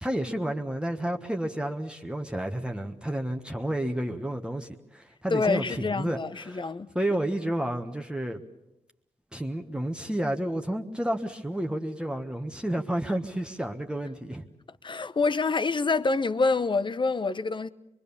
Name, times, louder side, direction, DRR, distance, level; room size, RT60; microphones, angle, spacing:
voice 1, 0.0-6.7 6.9-8.4 9.3-14.4, right 1 dB, 10° right, 1.4 m, -31 dB
voice 2, 5.3-6.9 14.8-17.7, left 3 dB, 40° left, 0.9 m, -26 dB
23.5 x 23.0 x 7.1 m
cardioid pair, 60°, 12 cm